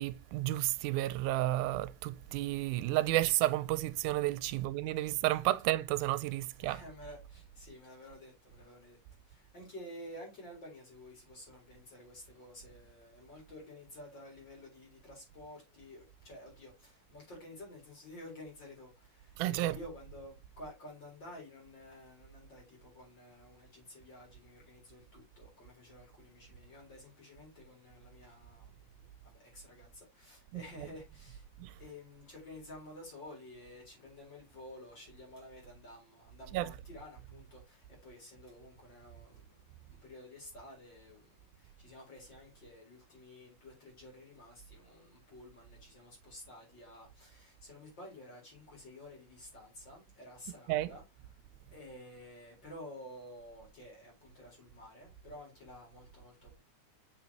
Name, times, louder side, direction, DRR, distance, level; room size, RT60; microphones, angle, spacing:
voice 1, 0.0-6.8 19.4-19.8 31.6-31.7 36.5-36.7 50.7-50.9, right 16 dB, 90° right, 2.1 m, -31 dB
voice 2, 6.6-9.0 9.2-31.5 31.8-39.6 39.9-51.0 51.7-56.6, left 1 dB, 35° left, 4.7 m, -52 dB
7.3 x 5.8 x 2.9 m
omnidirectional pair, 3.5 m